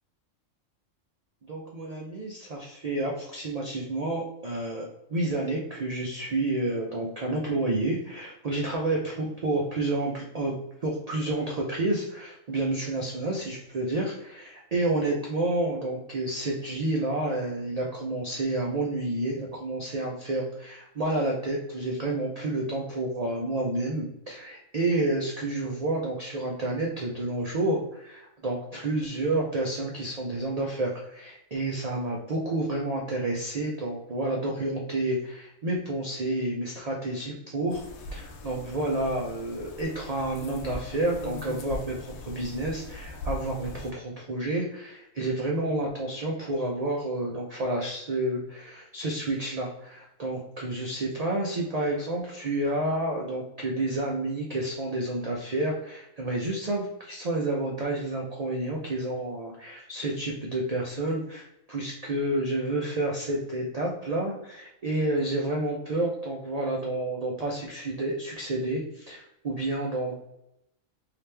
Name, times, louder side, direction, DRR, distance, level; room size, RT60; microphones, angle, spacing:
voice 1, 1.5-10.5 10.8-37.8 38.1-70.2, right 2 dB, 55° right, -2 dB, 0.4 m, -30 dB
sound 1, 37.7-43.9, left 2 dB, 85° left, 1.0 m, -40 dB
3.2 x 2.8 x 3.2 m, 0.83 s
omnidirectional pair, 1.4 m